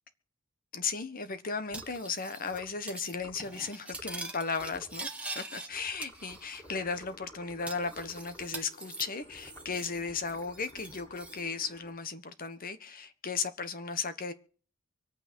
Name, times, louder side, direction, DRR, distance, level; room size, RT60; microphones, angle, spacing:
voice 1, 0.7-5.1 5.3-14.3, left 5 dB, 45° left, 1.4 m, -36 dB
sound 1, 1.7-2.0 2.5-2.8 3.1-3.4 3.9-4.3 4.6-5.0 5.7-8.6 9.2-12.0, equal, 10° left, 3.0 m, -54 dB
Cutlery silverware, 1.7-2.6 2.9-3.2 3.4-5.7 6.0-6.7 7.0-7.1 7.7-10.0 10.2-11.4, right 2 dB, 5° right, 1.8 m, -43 dB
sound 2, 6.6-11.9, left 2 dB, 25° left, 1.6 m, -57 dB
25.0 x 8.9 x 4.5 m
head